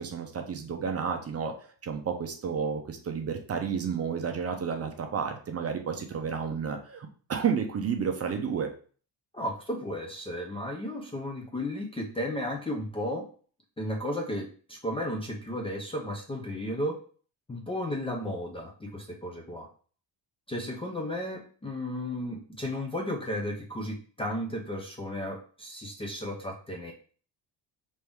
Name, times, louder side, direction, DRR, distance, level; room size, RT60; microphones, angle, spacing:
voice 1, 0.0-8.7, right 6 dB, 35° right, 5 dB, 0.6 m, -31 dB
voice 2, 9.3-13.3 13.8-17.0 17.5-19.7 20.5-26.9, left 1 dB, 15° left, 0 dB, 0.4 m, -34 dB
3.4 x 2.7 x 4.6 m, 0.42 s
cardioid pair, 145°, 43 cm